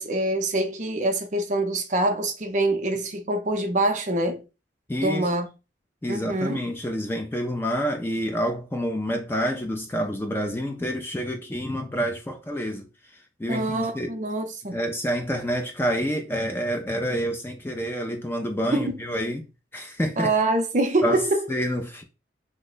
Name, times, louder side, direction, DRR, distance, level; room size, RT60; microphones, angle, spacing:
voice 1, 0.0-4.4 5.0-5.5 6.1-6.6 13.5-14.8 18.7-18.9 20.2-21.4, right 2 dB, 40° right, 0.5 m, -25 dB
voice 2, 4.9-5.3 6.0-12.9 13.4-14.1 14.7-19.5 19.7-20.3 21.0-21.2 21.5-22.0, equal, 10° left, 0.4 m, -28 dB
3.1 x 2.1 x 3.7 m
head